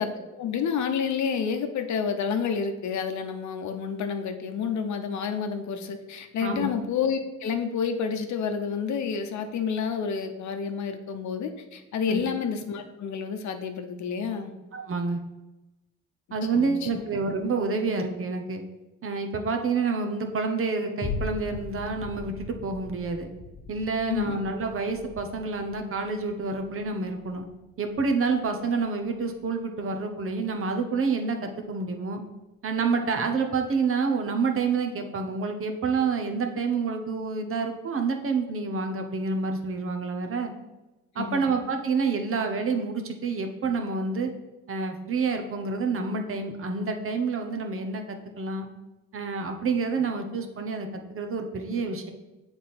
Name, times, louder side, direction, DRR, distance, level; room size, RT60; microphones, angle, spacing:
voice 1, 0.0-14.5 16.5-17.0 24.1-24.4 41.2-41.4, left 6 dB, 70° left, 7 dB, 0.8 m, -29 dB
voice 2, 6.4-6.7 12.1-12.3 14.7-15.2 16.3-18.6 19.0-23.3 23.7-27.5 27.8-32.2 32.6-40.5 41.1-44.3 44.7-48.7 49.1-52.1, right 4 dB, 45° right, 5 dB, 0.9 m, -28 dB
sound 1, 21.0-29.6 30.0-30.1, left 4 dB, 25° left, 1.0 m, -40 dB
7.6 x 3.5 x 4.2 m, 1.1 s
cardioid pair, 90°, 30 cm